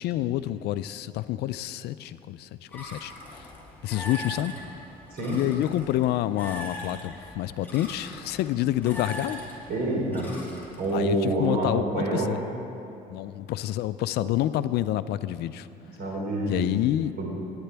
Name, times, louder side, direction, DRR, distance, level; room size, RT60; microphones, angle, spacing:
voice 1, 0.0-3.5 3.8-4.5 5.3-9.4 10.9-12.4 13.1-15.7 16.5-17.1, left 13 dB, 75° left, 14 dB, 0.4 m, -28 dB
sound 1, 2.7-11.0, left 1 dB, 10° left, 2.4 m, -41 dB
voice 2, 9.7-10.3 10.8-12.3 14.2-14.3 16.0-16.7 17.2-17.3, right 2 dB, 60° right, -2 dB, 3.5 m, -27 dB
19.5 x 9.8 x 3.4 m, 2.7 s
cardioid pair, 115°, 17 cm